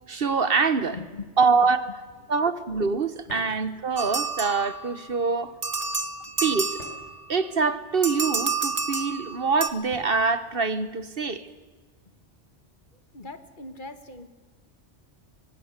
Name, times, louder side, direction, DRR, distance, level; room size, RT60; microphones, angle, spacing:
voice 1, 0.1-1.0 1.4-1.9 2.3-5.5 6.4-6.8 7.3-11.5, right 4 dB, 55° right, 13 dB, 1.3 m, -24 dB
voice 2, 0.9-1.3 1.6-1.7 3.3-3.4 13.1-14.3, left 3 dB, 45° left, 9 dB, 1.8 m, -40 dB
sound 1, 1.9-2.3 3.3-3.6 5.2-5.6 6.8-7.2 8.5-9.0 9.9-10.2, left 1 dB, 75° left, 5.7 m, -48 dB
sound 2, 4.0-5.1 5.6-7.3 8.0-9.7, right 4 dB, 35° right, 1.3 m, -29 dB
23.0 x 19.5 x 8.1 m, 1.4 s
omnidirectional pair, 1.2 m